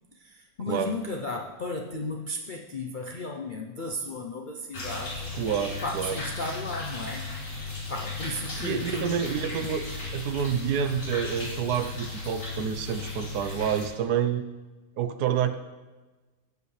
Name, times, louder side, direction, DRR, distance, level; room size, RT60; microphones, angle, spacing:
voice 1, 0.1-5.4 5.8-7.3 7.9-9.2, left 2 dB, 75° left, 1 dB, 0.4 m, -34 dB
sound 1, 4.7-13.9, left 3 dB, 50° left, 3.1 m, -36 dB
voice 2, 5.3-6.2 8.6-9.9 10.1-14.4 15.0-15.6, right 8 dB, 70° right, 9 dB, 1.2 m, -28 dB
17.5 x 7.9 x 3.2 m, 1.2 s
omnidirectional pair, 1.8 m